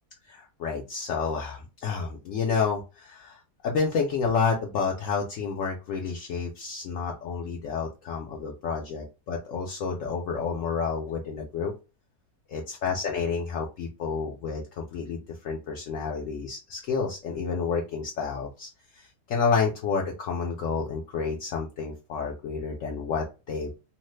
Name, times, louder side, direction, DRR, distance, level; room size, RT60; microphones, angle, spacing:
voice 1, 0.3-11.7 12.5-23.7, left 5 dB, 70° left, 0 dB, 0.9 m, -30 dB
3.1 x 2.0 x 3.1 m, 0.30 s
omnidirectional pair, 1.5 m